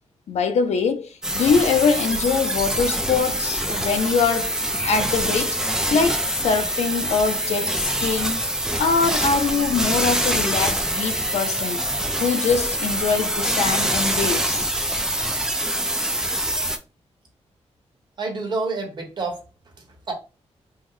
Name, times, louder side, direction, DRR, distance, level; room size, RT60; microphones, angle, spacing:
voice 1, 0.3-5.6 5.9-8.4 8.8-11.8 12.2-14.7, left 5 dB, 70° left, 0.4 m, -23 dB
sound 1, 1.2-16.8, right 1 dB, 5° right, 0.4 m, -24 dB
voice 2, 18.2-20.1, right 3 dB, 40° right, 1.0 m, -29 dB
3.6 x 2.1 x 3.1 m
wide cardioid pair, 155°, 11 cm